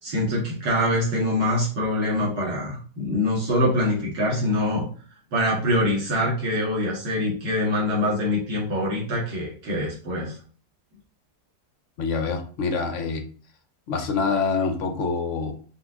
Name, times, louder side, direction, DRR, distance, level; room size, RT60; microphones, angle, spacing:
voice 1, 0.0-4.8 5.3-10.4, left 1 dB, 75° right, -6 dB, 2.7 m, -24 dB
voice 2, 12.0-13.2 13.9-15.5, left 4 dB, 65° left, 5 dB, 0.7 m, -25 dB
5.6 x 2.3 x 3.7 m, 0.42 s
omnidirectional pair, 1.9 m